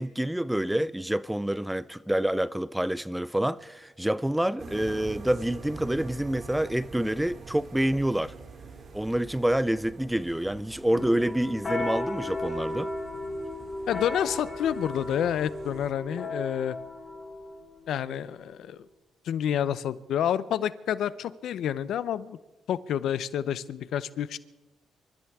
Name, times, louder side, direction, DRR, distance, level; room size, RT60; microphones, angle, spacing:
voice 1, 0.0-8.3 8.9-12.9, right 1 dB, 5° right, 0.4 m, -27 dB
sound 1, 4.6-15.9, right 4 dB, 50° right, 2.3 m, -45 dB
sound 2, 10.9-18.4, left 2 dB, 25° left, 4.2 m, -35 dB
voice 2, 13.9-16.8 17.9-18.8 19.3-22.4 22.7-24.4, left 10 dB, 75° left, 0.6 m, -29 dB
27.0 x 13.5 x 3.6 m
cardioid pair, 90°, 0 cm